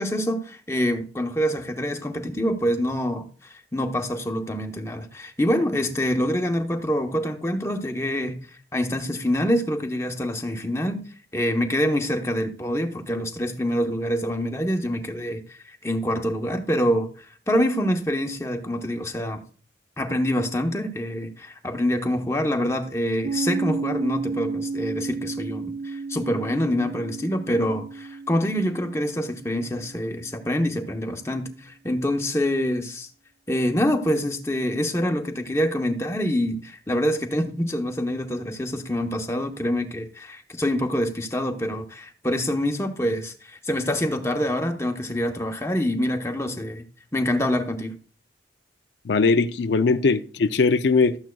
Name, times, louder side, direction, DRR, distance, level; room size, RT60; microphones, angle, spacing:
voice 1, 0.0-11.0 11.3-19.4 20.0-33.1 33.5-46.8 47.1-48.0, equal, 15° left, 0.9 m, -26 dB
Piano, 23.2-30.5, right 4 dB, 80° right, 3.5 m, -32 dB
voice 2, 49.1-51.2, left 4 dB, 75° left, 0.5 m, -20 dB
13.0 x 8.9 x 2.3 m
head